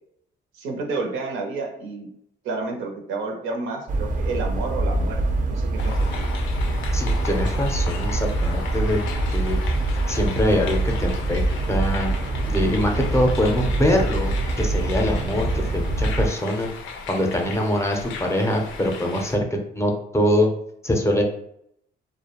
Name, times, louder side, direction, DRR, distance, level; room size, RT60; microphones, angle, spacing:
voice 1, 0.5-2.1 2.4-6.2, right 3 dB, 90° right, 2 dB, 0.6 m, -30 dB
sound 1, 3.9-16.3, right 2 dB, 40° right, 0.4 m, -24 dB
sound 2, 5.8-19.4, left 5 dB, 85° left, 0.4 m, -36 dB
voice 2, 6.9-9.0 9.3-9.6 10.1-11.4 11.7-12.1 12.5-16.7 17.1-20.5 20.8-21.2, left 1 dB, 15° left, 1 dB, 0.5 m, -23 dB
2.2 x 2.1 x 2.9 m, 0.72 s
cardioid pair, 90°, 20 cm